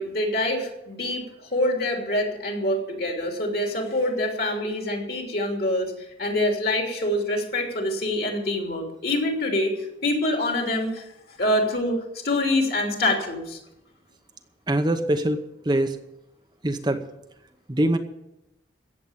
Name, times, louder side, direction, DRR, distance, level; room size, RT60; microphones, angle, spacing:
voice 1, 0.0-5.9 6.2-9.7 10.0-11.0 11.4-12.0 12.2-13.6, left 1 dB, 55° left, 2 dB, 3.2 m, -25 dB
voice 2, 14.7-15.4 15.6-16.0 16.6-17.0 17.7-18.0, right 1 dB, 25° right, 7 dB, 0.8 m, -23 dB
16.0 x 7.8 x 8.5 m, 0.87 s
head